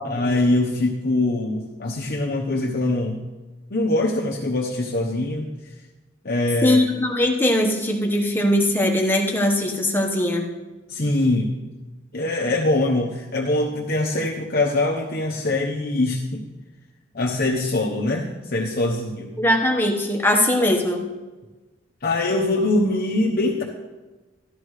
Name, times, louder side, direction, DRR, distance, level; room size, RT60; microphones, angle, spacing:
voice 1, 0.0-3.2 3.7-5.5 6.2-6.8 10.9-11.5 12.1-16.4 17.1-19.3 22.0-23.6, left 2 dB, 45° left, 0 dB, 1.0 m, -23 dB
voice 2, 6.6-10.4 19.4-21.1, left 1 dB, 10° left, 1 dB, 1.2 m, -20 dB
13.5 x 13.0 x 3.2 m, 1.2 s
head